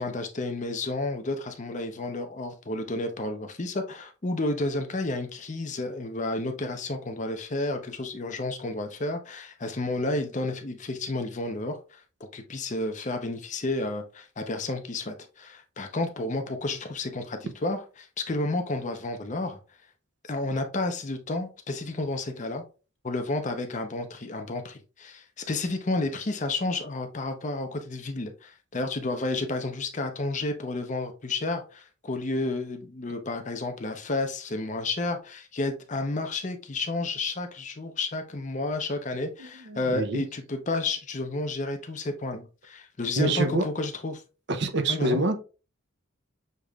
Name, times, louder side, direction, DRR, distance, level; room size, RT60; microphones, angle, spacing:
voice 1, 0.0-12.0 12.3-19.6 20.2-22.6 23.0-44.2 44.9-45.2, left 2 dB, 35° left, 0.7 m, -31 dB
voice 2, 39.7-40.2 43.2-43.6 44.5-45.4, right 2 dB, 60° right, 0.6 m, -25 dB
6.6 x 3.1 x 2.3 m
head